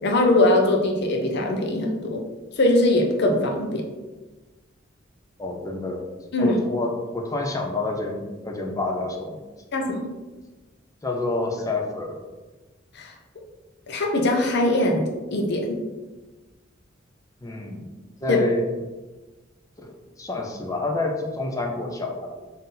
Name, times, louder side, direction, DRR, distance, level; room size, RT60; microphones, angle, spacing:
voice 1, 0.0-2.2 2.6-3.8 6.3-6.6 9.7-10.1 12.9-13.1 13.9-15.8 18.3-18.4, left 1 dB, 60° left, 2 dB, 0.7 m, -21 dB
voice 2, 5.4-6.0 6.4-9.4 11.0-12.2 17.4-17.9 18.2-18.7 19.8-19.9 20.2-22.3, left 2 dB, 20° left, 1 dB, 0.5 m, -28 dB
3.9 x 2.7 x 3.8 m, 1.2 s
head